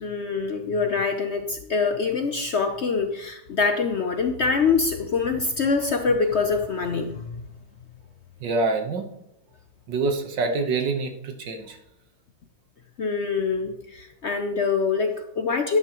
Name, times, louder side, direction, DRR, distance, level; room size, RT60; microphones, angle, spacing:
voice 1, 0.0-7.4 13.0-15.8, left 4 dB, 60° left, 5 dB, 0.7 m, -24 dB
voice 2, 8.4-9.1 9.9-11.8, right 3 dB, 85° right, 5 dB, 1.9 m, -26 dB
11.5 x 9.7 x 3.0 m, 0.84 s
omnidirectional pair, 1.9 m